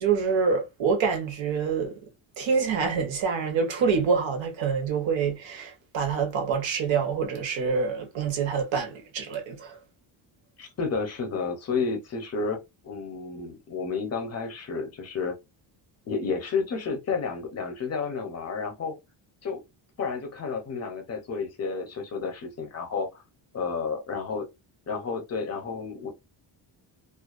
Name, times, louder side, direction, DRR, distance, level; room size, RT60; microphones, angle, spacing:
voice 1, 0.0-1.9 2.4-9.8, right 5 dB, 70° right, 0.9 m, -26 dB
voice 2, 10.6-15.3 16.1-18.9 19.4-19.6 20.0-23.2 23.5-24.5 24.9-26.1, left 5 dB, 35° left, 0.6 m, -31 dB
2.4 x 2.2 x 2.3 m
cardioid pair, 170°, 47 cm